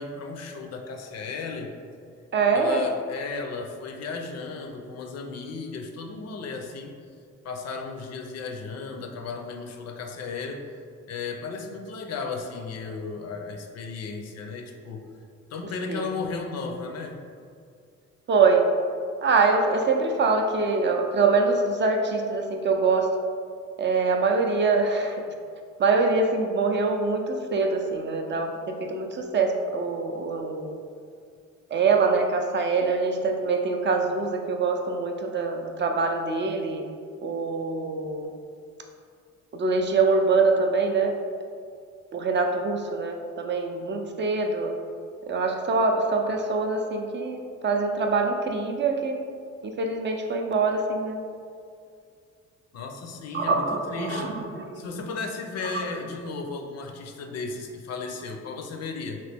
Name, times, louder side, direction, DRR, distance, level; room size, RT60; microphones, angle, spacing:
voice 1, 0.0-1.7 2.5-6.9 7.4-10.6 11.1-15.0 15.5-17.2 52.7-54.4 54.7-59.2, left 4 dB, 60° left, 4 dB, 0.5 m, -35 dB
voice 2, 2.3-2.8 15.9-16.1 18.3-18.7 19.2-23.2 23.8-25.2 25.8-30.8 31.7-36.8 37.2-38.3 39.5-41.2 42.1-44.7 45.3-49.2 49.6-51.2 53.3-54.9 55.6-55.8, right 4 dB, 40° right, 3 dB, 0.4 m, -24 dB
3.0 x 2.8 x 3.3 m, 2.3 s
cardioid pair, 90°, 30 cm